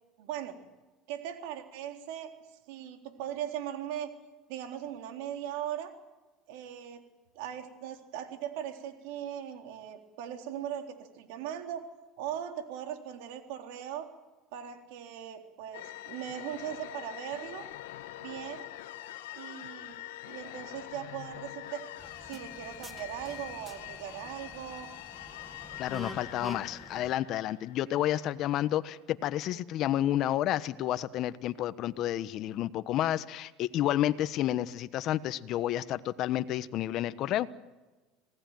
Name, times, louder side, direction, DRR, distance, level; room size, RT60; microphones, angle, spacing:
voice 1, 0.2-0.6 1.1-2.3 2.7-4.1 4.5-5.9 6.5-7.0 7.4-11.8 12.2-14.1 14.5-17.7 18.2-18.7 19.3-21.8 22.3-24.9, right 10 dB, 75° right, 5 dB, 3.7 m, -39 dB
sound 1, 15.7-28.2, left 15 dB, 90° left, 1.5 m, -45 dB
sound 2, 22.0-27.1, equal, 5° right, 2.0 m, -48 dB
voice 2, 25.8-37.5, left 13 dB, 50° left, 13 dB, 1.2 m, -30 dB
27.0 x 18.0 x 9.2 m, 1.2 s
supercardioid pair, 120°, 0 cm